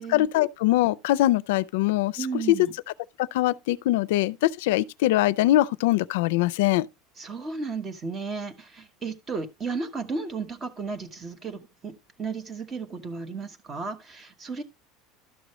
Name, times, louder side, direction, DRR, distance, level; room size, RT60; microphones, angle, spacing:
voice 1, 0.0-2.6 3.2-6.9, left 15 dB, 80° left, 0.4 m, -23 dB
voice 2, 2.2-2.7 7.2-14.6, right 4 dB, 20° right, 1.1 m, -34 dB
12.0 x 6.1 x 3.1 m
cardioid pair, 170°, 0 cm